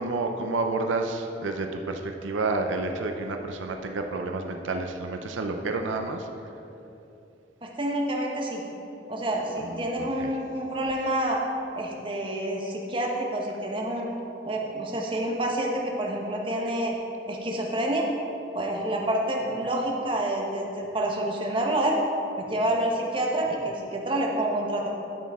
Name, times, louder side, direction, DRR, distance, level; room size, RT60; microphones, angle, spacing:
voice 1, 0.0-6.3 9.6-10.3, right 3 dB, 90° right, 4 dB, 0.6 m, -30 dB
voice 2, 7.6-8.6 9.1-11.4 11.8-14.1 14.4-16.9 17.3-18.1 18.5-22.0 22.4-24.9, right 1 dB, 25° right, -1 dB, 1.0 m, -28 dB
12.5 x 6.2 x 3.6 m, 2.9 s
head